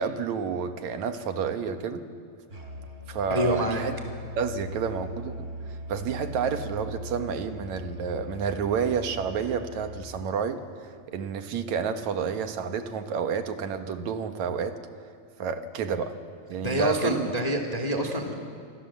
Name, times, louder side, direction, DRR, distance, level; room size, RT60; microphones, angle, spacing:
voice 1, 0.0-2.1 3.1-4.0 4.4-14.8 15.4-16.2 16.5-17.3, right 6 dB, 75° right, 7 dB, 2.7 m, -30 dB
Musical instrument, 2.5-10.3, left 1 dB, 25° right, 3.4 m, -40 dB
voice 2, 3.3-3.8 16.6-18.3, equal, 15° left, 4 dB, 2.0 m, -27 dB
26.5 x 25.0 x 7.4 m, 2.2 s
omnidirectional pair, 3.3 m